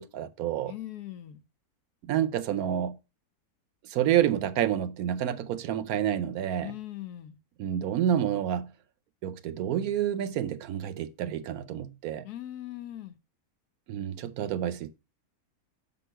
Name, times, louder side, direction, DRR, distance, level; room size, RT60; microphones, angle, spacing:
voice 1, 0.0-0.7 2.1-3.0 3.8-6.7 7.6-8.7 9.2-12.3 13.9-14.9, right 10 dB, 75° right, 1.0 m, -29 dB
voice 2, 0.6-1.4 6.6-7.4 12.2-13.2, left 13 dB, 75° left, 1.2 m, -40 dB
6.1 x 5.4 x 4.5 m
omnidirectional pair, 1.7 m